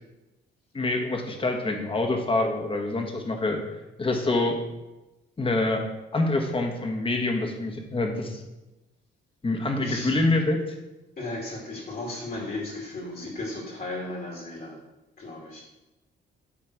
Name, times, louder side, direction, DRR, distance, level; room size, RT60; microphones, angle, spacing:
voice 1, 0.7-3.6 4.0-4.6 5.4-5.9 6.1-8.4 9.4-10.8, left 2 dB, 25° left, 3 dB, 1.4 m, -26 dB
voice 2, 9.8-10.2 11.2-14.8 15.2-15.6, left 2 dB, 50° left, -2 dB, 2.4 m, -35 dB
8.4 x 3.8 x 6.0 m, 1.0 s
cardioid pair, 90°, 20 cm